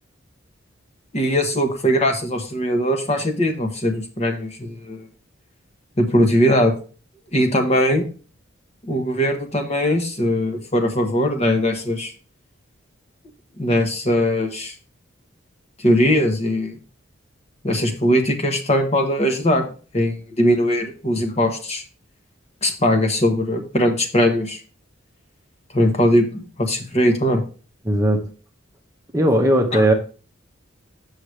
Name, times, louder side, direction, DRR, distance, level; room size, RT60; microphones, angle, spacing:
voice 1, 1.1-5.1 6.0-6.7 7.3-8.1 8.8-12.1 13.6-14.7 15.8-16.8 17.6-19.7 19.9-21.8 22.6-24.6 25.7-27.4 29.7-29.8, equal, 30° left, 4 dB, 1.2 m, -20 dB
voice 2, 27.8-28.3 29.1-29.9, right 1 dB, 15° right, 2 dB, 0.9 m, -17 dB
7.9 x 6.6 x 3.3 m, 0.37 s
head